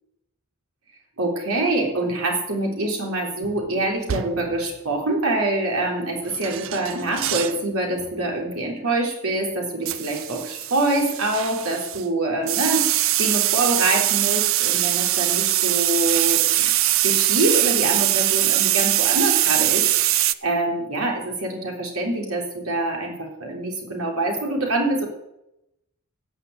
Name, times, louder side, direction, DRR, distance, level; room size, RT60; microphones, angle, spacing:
voice 1, 1.2-16.7 17.0-25.1, right 2 dB, 90° right, 1 dB, 3.6 m, -25 dB
sound 1, 3.4-3.7 4.1-4.6 6.3-7.6 8.0-8.3 9.9-12.0 12.5-20.3, right 14 dB, 65° right, 0.5 m, -22 dB
16.5 x 5.9 x 8.0 m, 0.85 s
head